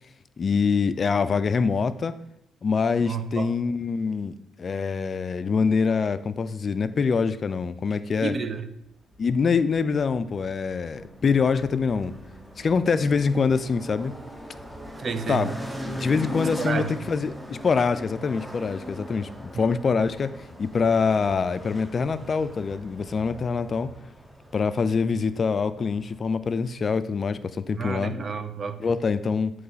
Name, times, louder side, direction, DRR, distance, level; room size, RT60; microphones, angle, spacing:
voice 1, 0.4-2.2 2.6-8.3 9.2-12.1 12.6-14.1 15.3-15.5 15.9-20.3 20.6-23.9 24.5-28.1 28.8-29.5, left 5 dB, 40° left, 14 dB, 0.3 m, -25 dB
voice 2, 3.0-3.5 8.2-8.7 15.0-15.5 16.6-16.9 19.5-19.7 27.7-28.9, right 5 dB, 45° right, 10 dB, 0.5 m, -30 dB
sound 1, 9.1-26.6, left 1 dB, 5° right, 0.7 m, -40 dB
7.9 x 3.1 x 4.0 m, 0.76 s
cardioid pair, 90°, 0 cm